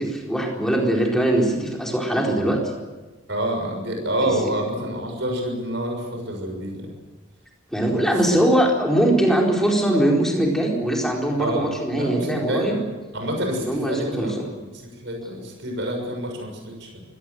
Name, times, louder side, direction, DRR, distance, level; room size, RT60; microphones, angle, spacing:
voice 1, 0.2-2.6 4.2-4.5 7.7-12.8 13.6-14.4, right 1 dB, ahead, -1 dB, 4.3 m, -21 dB
voice 2, 3.3-6.9 8.3-8.4 11.4-12.9 13.1-17.0, right 1 dB, 60° right, 2 dB, 6.5 m, -28 dB
24.5 x 18.0 x 7.9 m, 1.2 s
head